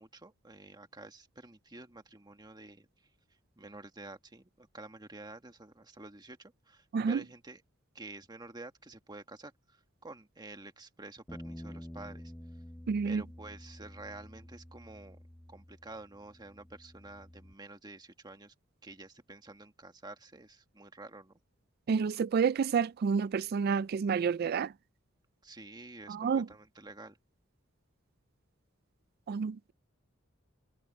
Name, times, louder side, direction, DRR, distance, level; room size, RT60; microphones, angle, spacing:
voice 1, 0.0-2.9 3.6-7.6 7.9-12.3 13.0-15.2 15.5-18.5 18.8-21.4 25.4-27.2, right 2 dB, 20° right, 1.6 m, -49 dB
sound 1, 11.3-17.5, equal, 10° left, 0.8 m, -49 dB
voice 2, 12.9-13.2 21.9-24.7 26.1-26.5 29.3-29.7, right 6 dB, 50° right, 0.3 m, -29 dB
head